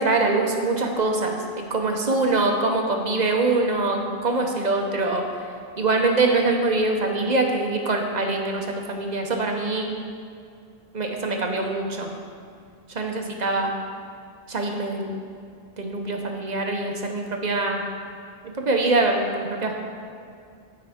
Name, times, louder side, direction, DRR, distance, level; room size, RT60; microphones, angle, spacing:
voice 1, 0.0-5.2 5.8-10.0 10.9-12.1 12.9-13.7 14.5-15.2 15.8-17.8 18.4-19.7, right 2 dB, 45° right, 2 dB, 0.9 m, -24 dB
14.0 x 4.8 x 3.5 m, 2.4 s
omnidirectional pair, 1.0 m